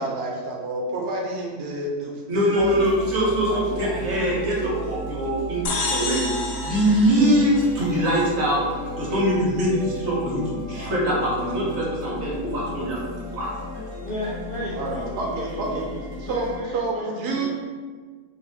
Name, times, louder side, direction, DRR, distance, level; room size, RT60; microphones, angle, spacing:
voice 1, 0.0-2.8 3.2-4.0 7.1-7.3 14.2-14.3 14.8-15.8 16.2-17.5, right 2 dB, 85° right, -1 dB, 1.2 m, -29 dB
voice 2, 2.3-6.3 6.6-8.6 9.0-13.0 13.3-13.8, equal, 60° right, -5 dB, 1.3 m, -23 dB
sound 1, 2.5-16.6, equal, 30° right, 0.9 m, -35 dB
sound 2, 5.7-8.2, left 3 dB, 80° left, 1.1 m, -30 dB
voice 3, 14.0-17.5, equal, 60° left, -8 dB, 0.6 m, -34 dB
3.0 x 2.7 x 3.4 m, 1.5 s
omnidirectional pair, 1.7 m